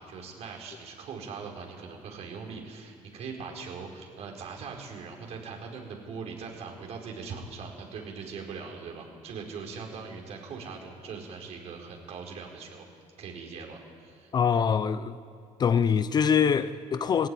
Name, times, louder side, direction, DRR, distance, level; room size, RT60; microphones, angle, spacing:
voice 1, 0.1-12.9 13.2-14.3, right 5 dB, 55° right, 4.7 m, -41 dB
voice 2, 14.3-15.2 15.6-17.3, left 7 dB, 35° left, 0.6 m, -24 dB
20.0 x 15.0 x 9.8 m
cardioid pair, 140°, 13 cm